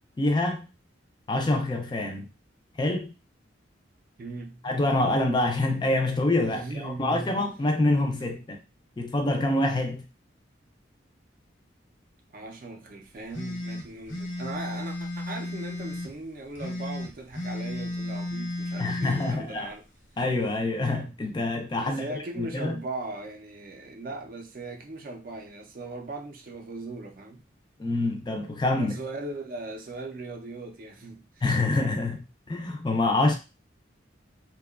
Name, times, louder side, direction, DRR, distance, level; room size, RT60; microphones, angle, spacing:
voice 1, 0.2-0.7 1.3-2.3 2.8-3.1 4.6-8.6 9.0-10.0 18.8-19.7 20.2-22.8 27.8-29.0 31.4-33.4, left 2 dB, 25° left, 0.3 m, -26 dB
voice 2, 4.2-4.6 6.5-7.4 12.3-19.8 21.8-27.4 28.7-31.4, right 2 dB, 45° right, 0.4 m, -38 dB
sound 1, 13.3-16.1 16.5-19.4, left 1 dB, 85° left, 0.8 m, -34 dB
2.7 x 2.2 x 2.3 m
head